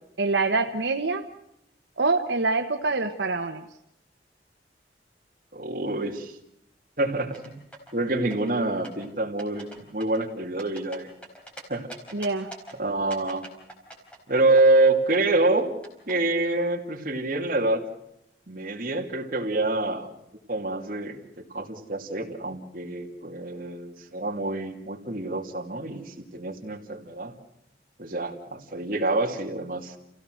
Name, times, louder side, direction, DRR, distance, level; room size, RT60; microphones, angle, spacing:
voice 1, 0.2-1.3 2.0-3.6 12.1-12.5, right 3 dB, 85° right, 5 dB, 1.1 m, -25 dB
voice 2, 5.5-6.3 7.0-7.6 7.9-11.1 11.7-11.9 12.8-13.4 14.3-15.7 16.1-17.8 18.5-20.1 20.5-27.3 28.0-29.9, right 2 dB, 50° right, 1 dB, 2.7 m, -26 dB
sound 1, 7.2-7.9 8.3-9.1 9.4-9.8 10.0-11.6 11.9-12.7 13.1-14.9 15.1-16.1, right 1 dB, 5° left, 4.6 m, -43 dB
29.0 x 16.5 x 6.4 m, 0.81 s
head